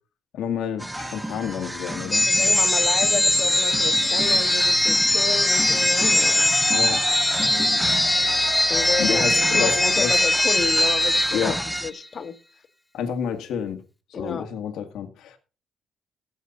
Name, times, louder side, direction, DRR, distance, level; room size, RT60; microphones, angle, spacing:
voice 1, 0.3-2.3 6.7-7.2 9.0-10.2 11.3-11.6 12.9-13.8 14.2-15.4, left 8 dB, 80° left, 1.9 m, -29 dB
sound 1, 0.8-11.9, right 1 dB, 5° right, 0.7 m, -31 dB
sound 2, 2.1-11.9, left 1 dB, 10° left, 1.9 m, -21 dB
voice 2, 2.3-6.5 8.7-9.2 9.5-11.5 11.8-12.3 14.1-14.5, left 5 dB, 50° left, 1.6 m, -31 dB
16.0 x 7.2 x 4.1 m
cardioid pair, 90°, 0 cm